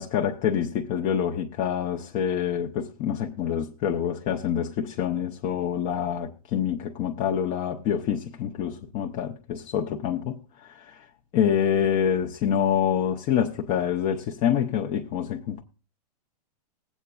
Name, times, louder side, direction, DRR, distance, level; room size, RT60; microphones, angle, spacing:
voice 1, 0.0-11.1 11.3-15.6, left 9 dB, 30° left, 0.6 m, -26 dB
20.5 x 8.1 x 2.3 m
supercardioid pair, 155°, 20 cm